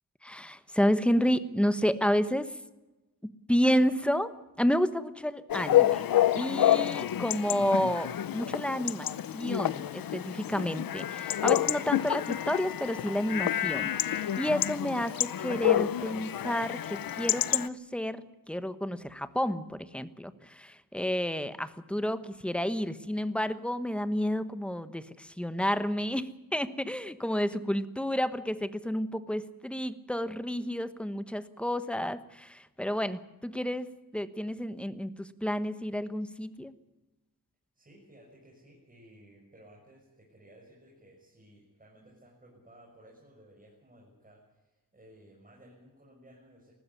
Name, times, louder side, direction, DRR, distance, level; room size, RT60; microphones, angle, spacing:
voice 1, 0.2-2.6 3.2-6.0 6.3-9.1 9.3-36.7, equal, 5° left, 12 dB, 1.2 m, -30 dB
Chatter / Bark / Livestock farm animals working animals, 5.5-17.7, left 12 dB, 90° left, 0.8 m, -28 dB
voice 2, 37.7-46.7, right 1 dB, 25° right, -3 dB, 6.5 m, -57 dB
20.0 x 15.0 x 9.7 m, 1.1 s
wide cardioid pair, 110°, 34 cm